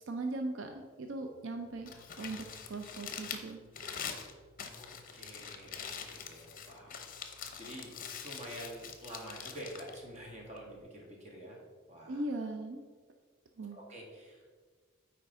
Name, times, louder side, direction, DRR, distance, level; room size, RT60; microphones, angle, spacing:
voice 1, 0.1-1.9 2.2-3.6 12.1-12.8 13.6-13.8, right 2 dB, 70° right, 5 dB, 0.5 m, -39 dB
Crumpling crinkling, 1.7-10.8, left 7 dB, 45° left, 0.7 m, -45 dB
voice 2, 4.7-7.9 8.2-11.6 11.9-12.2 13.7-14.5, equal, 35° right, -2 dB, 1.6 m, -48 dB
9.0 x 4.6 x 3.6 m, 1.5 s
head